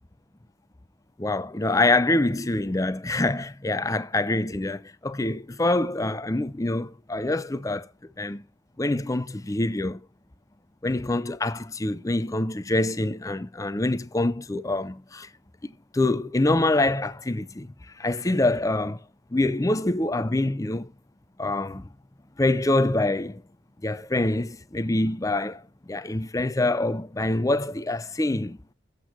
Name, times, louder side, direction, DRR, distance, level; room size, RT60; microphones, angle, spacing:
voice 1, 1.2-8.4 8.8-10.0 10.8-15.3 15.6-17.7 18.0-19.0 19.3-20.9 21.4-21.9 22.4-23.4 23.8-25.6 25.9-28.6, left 2 dB, 15° left, 0.5 m, -25 dB
8.2 x 7.4 x 6.0 m
head